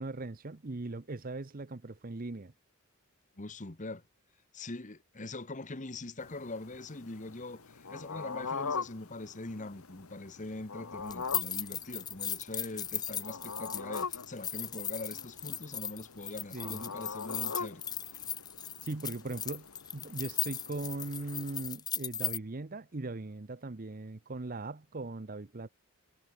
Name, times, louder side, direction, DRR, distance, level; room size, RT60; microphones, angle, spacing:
voice 1, 0.0-2.5 16.5-16.8 18.8-25.7, right 2 dB, 40° right, 0.8 m, -39 dB
voice 2, 3.4-4.0 4.5-17.8 18.1-18.2, left 2 dB, 35° left, 1.3 m, -42 dB
sound 1, 6.2-21.6, left 5 dB, 75° left, 1.3 m, -43 dB
sound 2, 11.1-22.4, left 9 dB, 20° left, 0.6 m, -37 dB
head